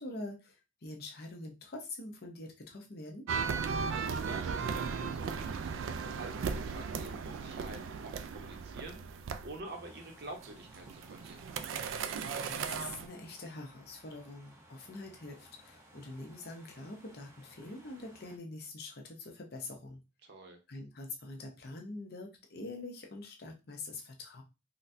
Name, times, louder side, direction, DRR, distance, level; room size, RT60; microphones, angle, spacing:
voice 1, 0.0-3.3 12.3-20.0 20.7-24.4, left 2 dB, 50° left, 2 dB, 0.7 m, -45 dB
sound 1, 3.3-9.6 10.4-13.1, right 5 dB, 75° right, 0.3 m, -36 dB
voice 2, 3.9-11.5 20.2-20.6, right 2 dB, 55° right, 4 dB, 0.7 m, -48 dB
sound 2, 9.6-18.4, equal, 15° right, 0.5 m, -58 dB
3.9 x 2.1 x 2.6 m, 0.27 s
head